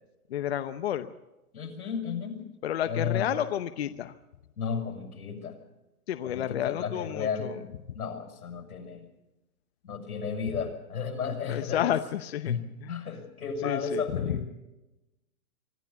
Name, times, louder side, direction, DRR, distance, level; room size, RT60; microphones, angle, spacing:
voice 1, 0.3-1.1 2.6-4.1 6.1-7.6 11.5-12.5 12.8-12.9 13.6-14.4, left 11 dB, 45° left, 10 dB, 0.9 m, -30 dB
voice 2, 1.5-2.4 2.8-3.3 4.6-5.6 6.2-7.7 7.9-9.1 9.8-11.9 12.5-14.5, left 6 dB, 85° left, 4 dB, 6.9 m, -33 dB
24.5 x 13.5 x 8.2 m, 0.98 s
hypercardioid pair, 170°, 44 cm